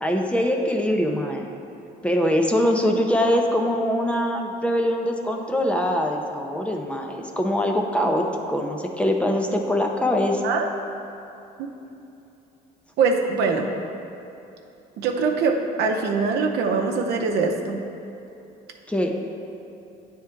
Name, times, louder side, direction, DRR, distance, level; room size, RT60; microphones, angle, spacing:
voice 1, 0.0-1.5 2.0-8.2 8.5-10.4 18.9-19.1, left 1 dB, 5° left, 2 dB, 0.5 m, -23 dB
voice 2, 13.0-13.7 15.0-17.8, right 4 dB, 75° right, 2 dB, 0.7 m, -23 dB
8.6 x 3.6 x 4.4 m, 2.8 s
cardioid pair, 110°, 17 cm